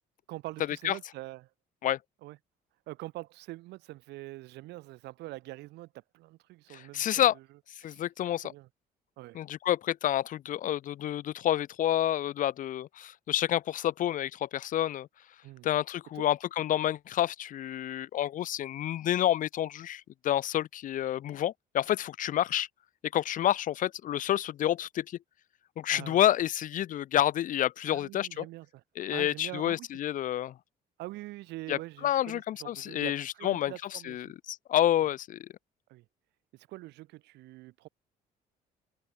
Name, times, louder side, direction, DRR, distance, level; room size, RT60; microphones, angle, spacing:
voice 1, 0.3-1.5 2.2-2.4 2.9-7.4 7.8-8.0 8.4-8.7 9.2-9.4 15.4-15.7 16.1-16.3 25.9-26.2 27.9-28.8 29.1-29.9 31.0-34.3 35.9-36.1 36.5-37.9, right 18 dB, 85° right, 7.0 m, -44 dB
voice 2, 6.7-7.3 7.8-8.5 9.3-15.1 15.6-22.7 23.1-25.2 25.8-28.4 29.0-30.5 31.7-35.5, left 12 dB, 50° left, 0.6 m, -29 dB
cardioid pair, 110°, 17 cm